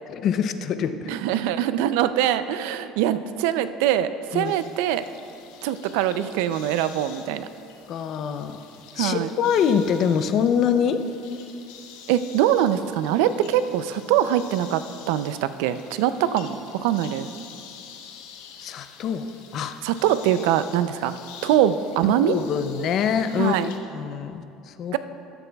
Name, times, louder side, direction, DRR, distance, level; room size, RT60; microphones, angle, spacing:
voice 1, 0.1-1.1 4.3-4.5 7.9-8.6 9.0-11.0 18.6-19.8 22.2-24.9, left 7 dB, 45° left, 10 dB, 0.5 m, -25 dB
voice 2, 1.1-5.0 5.6-7.5 9.0-9.3 12.1-14.8 15.1-17.3 19.8-21.1 21.4-22.4 23.4-23.7 24.9-25.0, right 11 dB, 80° right, 12 dB, 0.4 m, -23 dB
sound 1, 4.4-23.8, left 7 dB, 90° left, 1.0 m, -47 dB
15.0 x 11.0 x 2.3 m, 2.6 s
cardioid pair, 150°, 0 cm